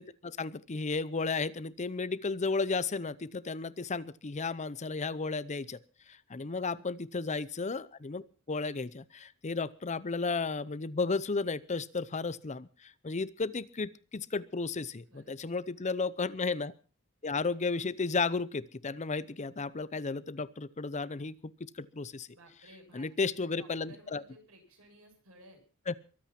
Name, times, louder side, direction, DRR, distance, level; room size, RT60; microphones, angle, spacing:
voice 1, 0.0-5.8 6.1-16.7 17.2-22.3 22.9-24.2 25.9-26.0, left 4 dB, 35° left, 17 dB, 0.7 m, -34 dB
voice 2, 15.1-15.8 22.3-25.6, right 1 dB, 80° right, 2 dB, 7.4 m, -57 dB
23.0 x 8.8 x 5.9 m, 0.38 s
head